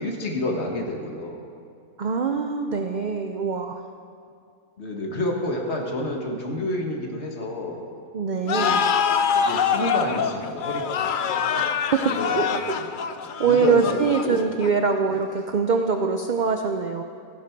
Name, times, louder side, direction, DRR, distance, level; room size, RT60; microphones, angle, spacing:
voice 1, 0.0-1.4 4.8-7.8 8.4-8.9 9.3-11.7 12.1-12.9 13.4-14.0 14.2-14.5 15.1-15.2, left 1 dB, 50° left, 0 dB, 1.8 m, -29 dB
voice 2, 2.0-3.8 8.1-8.8 11.5-12.7 13.4-17.0, right 5 dB, 75° right, 5 dB, 0.4 m, -24 dB
sound 1, 8.5-14.9, left 7 dB, 80° left, 0.4 m, -25 dB
15.0 x 11.0 x 4.6 m, 2.4 s
omnidirectional pair, 1.5 m